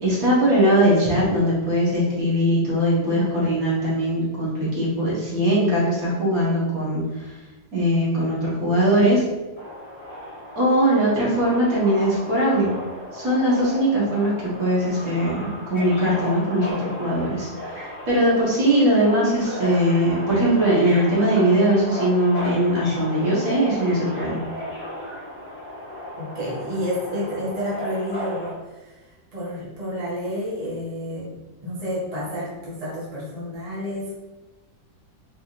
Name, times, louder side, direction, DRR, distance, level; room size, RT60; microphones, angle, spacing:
voice 1, 0.0-7.0 7.7-9.2 10.6-12.7 13.1-14.3 14.6-24.4, equal, 50° right, -7 dB, 1.6 m, -20 dB
Subway metro underground, 9.6-28.5, equal, 40° left, 1.8 m, -35 dB
voice 2, 26.2-31.3 31.6-34.1, equal, 25° right, -7 dB, 0.9 m, -30 dB
4.4 x 3.4 x 2.5 m, 1.2 s
omnidirectional pair, 2.1 m